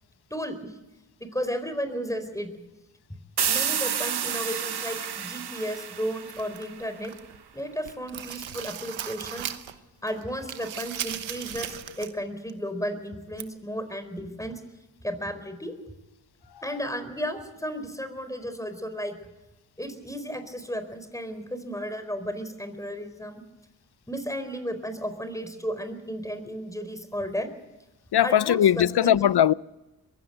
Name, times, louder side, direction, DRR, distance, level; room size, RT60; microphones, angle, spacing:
voice 1, 0.3-0.7 1.2-2.5 3.5-7.1 7.5-9.5 10.0-14.6 15.0-15.7 16.6-19.2 19.8-23.4 24.1-27.5 28.2-29.2, equal, 5° left, 4.4 m, -33 dB
sound 1, 3.4-7.0, right 8 dB, 55° right, 1.1 m, -30 dB
sound 2, 6.3-7.4 7.7-9.8 10.1-12.2 12.5-12.6 13.4-13.5, right 10 dB, 90° right, 1.2 m, -37 dB
voice 2, 28.1-29.5, left 10 dB, 60° left, 0.7 m, -20 dB
21.5 x 16.5 x 8.1 m
cardioid pair, 45°, 45 cm